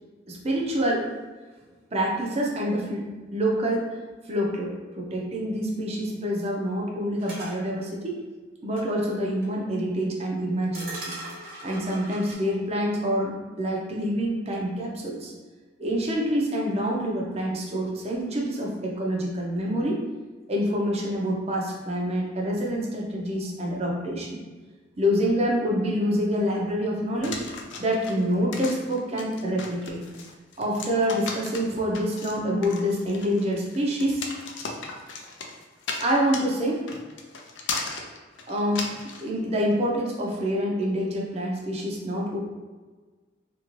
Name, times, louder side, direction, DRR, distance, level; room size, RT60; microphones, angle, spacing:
voice 1, 0.3-1.1 1.9-3.0 3.3-4.0 4.3-8.2 8.6-11.0 11.6-15.3 15.8-20.0 20.5-24.4 25.0-27.4 27.8-30.0 30.6-34.2 36.0-36.9 38.5-42.4, equal, 35° right, -1 dB, 0.6 m, -26 dB
sound 1, 7.2-7.6 8.8-8.9 9.4-9.5 10.7-12.3, right 1 dB, 55° right, 0.9 m, -39 dB
sound 2, 27.2-39.3, left 4 dB, 80° left, 0.5 m, -36 dB
2.9 x 2.6 x 3.0 m, 1.3 s
head